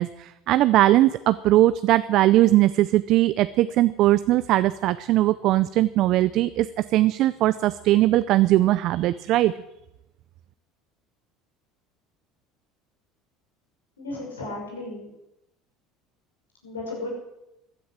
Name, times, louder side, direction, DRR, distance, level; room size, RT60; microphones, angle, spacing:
voice 1, 0.0-6.7 6.9-9.5, right 15 dB, 60° right, 14 dB, 0.5 m, -20 dB
voice 2, 14.0-15.1 16.6-17.1, left 2 dB, 90° left, -1 dB, 6.2 m, -34 dB
15.0 x 10.5 x 7.7 m, 0.89 s
hypercardioid pair, 70°, 0 cm